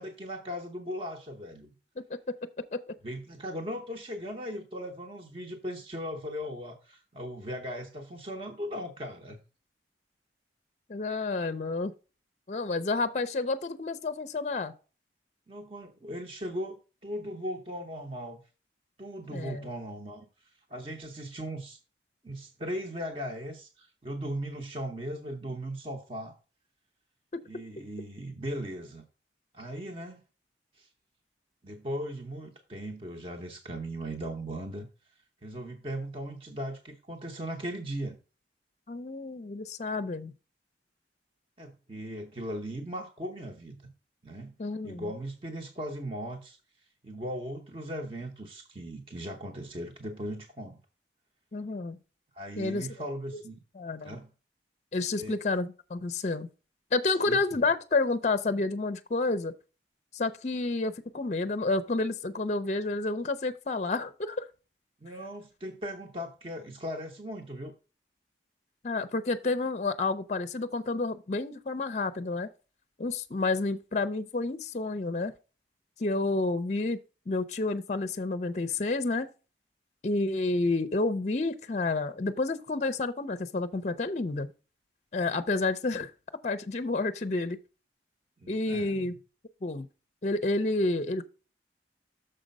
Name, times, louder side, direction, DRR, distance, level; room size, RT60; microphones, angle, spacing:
voice 1, 0.0-1.7 3.0-9.4 15.5-18.4 19.0-21.8 22.2-26.4 27.5-29.0 29.5-30.2 30.7-30.9 31.6-34.9 35.4-38.2 41.6-43.9 44.2-44.6 44.8-46.6 47.0-50.8 52.3-53.6 54.0-54.3 55.2-55.4 57.3-57.6 65.0-67.7 88.4-89.2, equal, 30° right, 0.8 m, -38 dB
voice 2, 2.0-2.4 2.7-2.8 10.9-11.9 12.5-14.7 19.3-19.7 38.9-40.3 44.6-45.1 51.5-52.0 52.6-52.9 53.8-54.2 54.9-56.5 56.9-59.5 60.1-64.5 68.8-72.5 73.0-75.3 76.0-77.0 77.3-79.3 80.0-84.5 85.1-86.1 86.4-87.6 88.5-89.2 89.6-89.9 90.2-91.3, left 3 dB, 40° left, 0.5 m, -30 dB
6.6 x 5.0 x 5.3 m
head